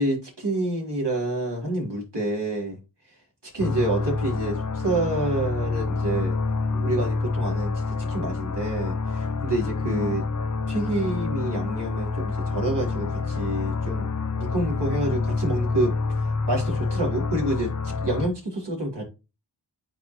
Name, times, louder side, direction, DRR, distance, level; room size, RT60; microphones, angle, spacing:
voice 1, 0.0-2.8 3.5-6.3 6.7-7.7 8.1-10.2 10.7-14.1 14.4-16.2 16.5-19.0, right 1 dB, 60° right, 3.8 m, -28 dB
sound 1, 3.6-18.3, left 4 dB, 40° left, 0.7 m, -27 dB
9.0 x 4.4 x 3.1 m
cardioid pair, 45°, 47 cm